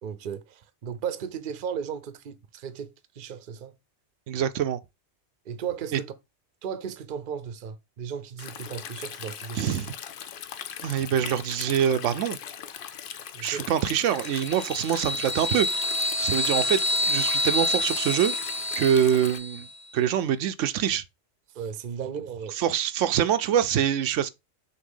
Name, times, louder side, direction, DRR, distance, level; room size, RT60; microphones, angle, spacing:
voice 1, 0.0-3.7 5.5-6.1 6.6-9.7 13.3-13.7 21.5-22.6, right 7 dB, 50° right, 0.8 m, -35 dB
voice 2, 4.3-4.8 5.9-6.0 9.6-9.9 10.8-12.4 13.4-15.7 16.2-18.3 18.8-19.7 19.9-21.0 22.5-24.3, right 9 dB, 90° right, 0.9 m, -25 dB
Stream, 8.4-19.4, left 8 dB, 55° left, 0.7 m, -40 dB
sound 1, 14.2-19.7, left 1 dB, 20° left, 0.9 m, -28 dB
6.5 x 2.8 x 5.5 m
omnidirectional pair, 1.2 m